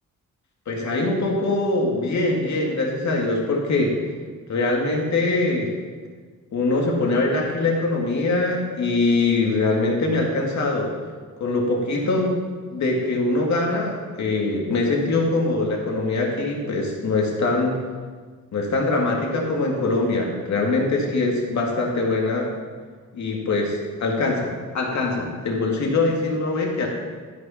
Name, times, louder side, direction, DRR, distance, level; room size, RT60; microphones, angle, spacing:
voice 1, 0.7-4.0 4.5-5.7 6.5-10.9 11.4-12.4 12.7-17.8 18.5-22.5 23.1-26.9, left 2 dB, 60° left, -1 dB, 2.3 m, -23 dB
12.5 x 7.3 x 5.7 m, 1.5 s
wide cardioid pair, 170°, 32 cm